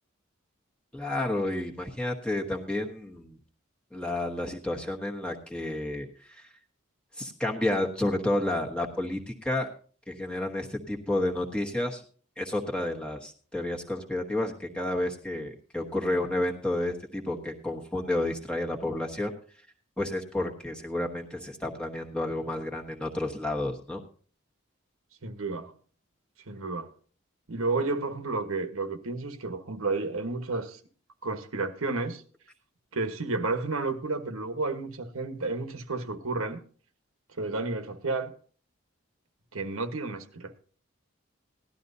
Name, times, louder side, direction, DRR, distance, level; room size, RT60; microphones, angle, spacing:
voice 1, 0.9-3.4 3.9-6.5 7.2-9.7 10.1-12.0 12.4-19.3 20.0-24.0, left 1 dB, 5° left, 1.2 m, -31 dB
voice 2, 25.2-25.7 26.5-26.9 27.5-30.8 31.2-32.2 32.9-36.6 37.4-38.3 39.5-40.6, right 3 dB, 85° right, 1.3 m, -31 dB
17.5 x 12.0 x 2.7 m
head